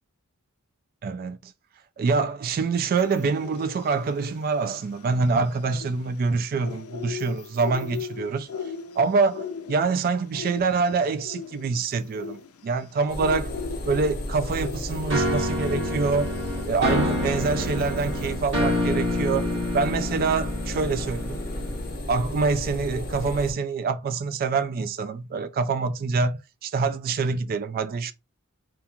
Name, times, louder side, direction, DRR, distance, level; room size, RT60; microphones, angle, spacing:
voice 1, 1.0-1.5 2.0-8.5 9.0-13.5 13.9-16.3 16.7-19.4 19.7-21.4 22.1-28.1, right 4 dB, 45° right, 0.3 m, -25 dB
sound 1, 3.0-18.4, left 6 dB, 80° left, 0.4 m, -40 dB
sound 2, 13.1-23.5, left 1 dB, 45° left, 0.8 m, -33 dB
sound 3, 15.1-21.9, left 1 dB, 60° right, 1.1 m, -28 dB
2.9 x 2.3 x 2.4 m
head